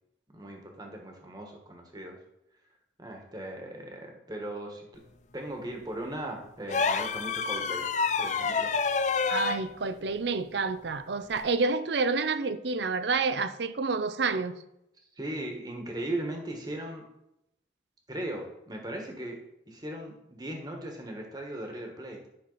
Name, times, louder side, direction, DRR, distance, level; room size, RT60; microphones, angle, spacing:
voice 1, 0.3-2.2 3.0-5.0 5.3-7.9 8.2-8.7 15.1-17.1 18.1-22.2, right 1 dB, 20° right, 1.5 m, -38 dB
sound 1, 6.7-9.6 11.3-11.5, left 5 dB, 40° left, 0.4 m, -28 dB
voice 2, 9.3-14.6, right 4 dB, 70° right, 0.6 m, -29 dB
10.5 x 5.8 x 4.1 m
head